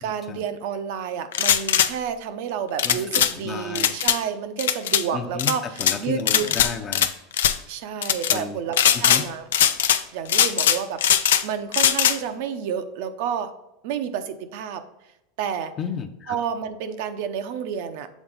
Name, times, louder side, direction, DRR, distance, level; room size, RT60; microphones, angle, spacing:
voice 1, 0.0-6.5 7.7-9.5 10.1-13.5 13.8-14.8 15.4-15.7 16.3-18.1, right 7 dB, 65° right, 9 dB, 0.6 m, -30 dB
sound 1, 1.3-1.9 2.8-3.3 3.7-4.2 4.6-5.0 5.4-6.0 6.3-7.1 7.3-7.6 8.0-8.4 8.7-9.2 9.5-10.0 10.3-11.4 11.7-12.2, left 10 dB, 90° left, 0.4 m, -19 dB
voice 2, 2.8-4.0 5.1-7.1 8.3-8.6 8.9-9.3 15.8-16.4, left 6 dB, 35° left, 7 dB, 0.6 m, -33 dB
7.2 x 3.9 x 3.9 m, 0.92 s
supercardioid pair, 115°, 0 cm